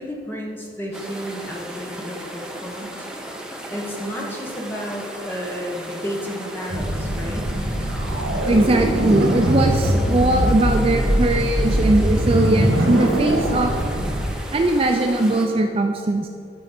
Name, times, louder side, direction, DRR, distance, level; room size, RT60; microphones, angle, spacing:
voice 1, 0.0-3.1 3.7-7.4, equal, 10° left, -1 dB, 1.2 m, -32 dB
sound 1, 0.9-15.5, right 1 dB, 5° right, 0.8 m, -36 dB
sound 2, 6.7-14.3, equal, 85° right, 1.5 m, -21 dB
voice 2, 8.5-13.7 14.5-16.3, right 2 dB, 30° right, 4 dB, 0.4 m, -20 dB
13.0 x 5.2 x 4.3 m, 2.4 s
head